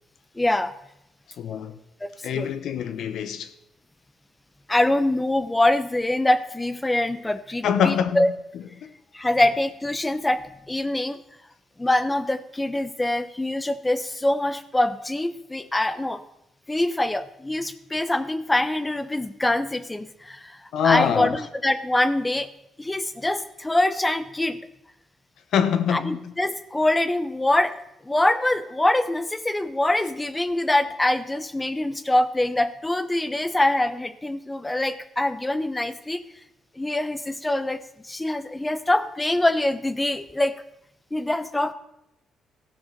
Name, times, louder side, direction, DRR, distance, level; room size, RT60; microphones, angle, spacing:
voice 1, 0.4-0.7 2.0-2.1 2.3-2.5 4.7-8.3 9.1-11.2 11.8-16.2 16.7-20.6 20.8-22.5 22.8-24.7 25.9-27.8 28.1-36.2 36.8-40.6 41.1-41.7, left 1 dB, 15° left, 0.8 m, -24 dB
voice 2, 1.4-1.8 2.2-3.5 7.6-8.3 8.8-8.9 20.7-21.4 25.5-26.3, left 8 dB, 75° left, 0.9 m, -24 dB
14.5 x 6.3 x 5.8 m
cardioid pair, 90°, 0 cm